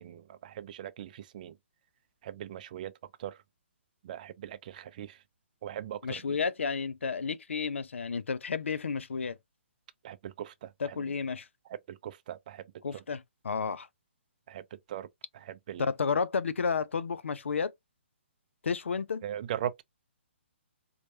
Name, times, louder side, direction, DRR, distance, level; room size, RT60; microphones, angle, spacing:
voice 1, 0.0-1.6 2.2-2.9 3.2-3.4 4.0-5.2 5.6-6.4 10.0-11.1 11.9-12.6 12.9-13.0 14.5-15.1 15.3-15.9 19.2-19.8, right 10 dB, 40° right, 0.4 m, -40 dB
voice 2, 6.0-9.4 10.8-11.5 12.8-13.9 15.8-17.7 18.6-19.2, left 5 dB, 75° left, 0.5 m, -31 dB
4.4 x 2.3 x 2.6 m
figure-of-eight pair, 135°, 7 cm